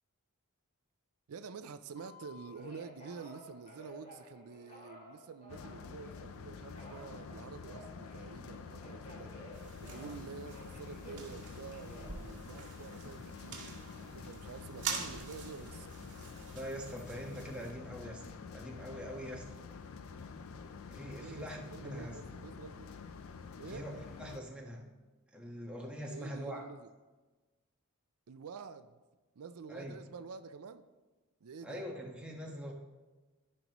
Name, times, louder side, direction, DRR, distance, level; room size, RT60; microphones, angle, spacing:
voice 1, 1.3-15.9 21.1-22.9 23.6-23.9 26.0-26.9 28.3-29.0 29.4-30.8 31.4-31.8, right 5 dB, 80° right, 0.4 m, -48 dB
Telephone, 1.9-6.3 6.7-10.2 10.4-13.0 13.5-14.0, left 1 dB, 30° left, 2.9 m, -54 dB
sound 1, 5.5-24.4, left 5 dB, 65° left, 0.5 m, -48 dB
sound 2, 9.5-17.7, right 5 dB, 55° right, 2.3 m, -46 dB
voice 2, 16.5-18.2 18.5-19.6 20.9-22.2 23.7-24.9 25.3-26.6 29.7-30.0 31.6-32.7, equal, 5° right, 1.3 m, -43 dB
16.0 x 5.4 x 3.0 m
head